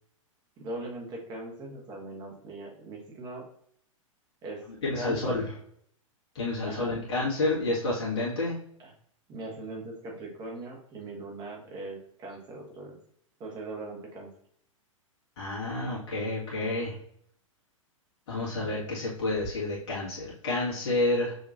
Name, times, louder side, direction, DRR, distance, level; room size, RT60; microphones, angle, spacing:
voice 1, 0.6-3.5 4.4-4.7 4.9-5.4 6.6-7.0 8.8-8.9 9.3-13.0 13.4-14.3, right 2 dB, 25° right, 1 dB, 1.3 m, -40 dB
voice 2, 4.8-5.5 6.4-8.6 15.4-17.0 18.3-21.4, left 2 dB, 50° left, -6 dB, 1.9 m, -29 dB
6.8 x 2.9 x 2.7 m, 0.66 s
figure-of-eight pair, 100°, 17 cm